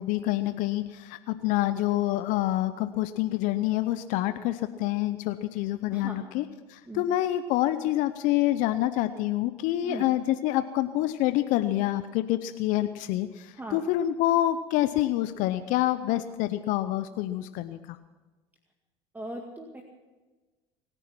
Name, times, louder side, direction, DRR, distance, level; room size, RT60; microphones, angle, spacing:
voice 1, 0.0-18.0, left 14 dB, 65° left, 11 dB, 0.7 m, -27 dB
voice 2, 5.9-6.2 6.9-7.1 9.8-10.0 13.5-13.9 19.1-19.8, right 1 dB, 15° right, 2 dB, 2.0 m, -39 dB
23.5 x 10.0 x 6.0 m, 1.2 s
hypercardioid pair, 80°, 14 cm